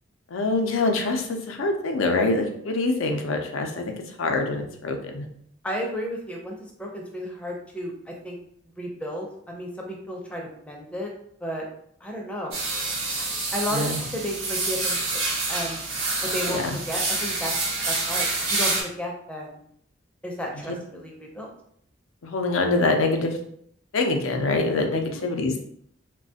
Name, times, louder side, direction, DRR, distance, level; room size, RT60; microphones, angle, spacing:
voice 1, 0.3-5.3 13.7-14.0 16.5-16.8 22.2-23.4 23.9-25.6, left 3 dB, 85° left, 4 dB, 0.5 m, -25 dB
voice 2, 5.6-8.4 8.7-11.1 11.4-11.6 12.0-12.6 13.2-15.2 15.5-15.8 16.2-17.5 17.9-19.6 20.2-21.5 24.9-25.3, equal, 5° left, 0 dB, 0.4 m, -33 dB
sound 1, 12.5-18.8, right 3 dB, 80° right, 0.9 m, -27 dB
3.1 x 2.2 x 2.7 m, 0.68 s
head